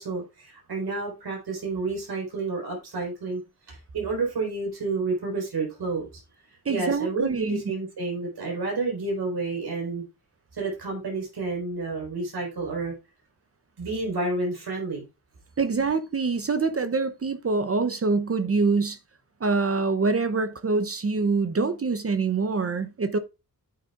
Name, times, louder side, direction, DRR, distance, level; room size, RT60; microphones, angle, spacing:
voice 1, 0.0-3.4 3.7-6.0 6.7-10.0 10.5-12.9 13.8-15.0, right 3 dB, 90° right, 4.6 m, -30 dB
voice 2, 6.6-7.6 15.6-19.0 19.4-23.2, right 4 dB, 40° right, 0.7 m, -25 dB
9.4 x 8.6 x 2.4 m
wide cardioid pair, 130°, 38 cm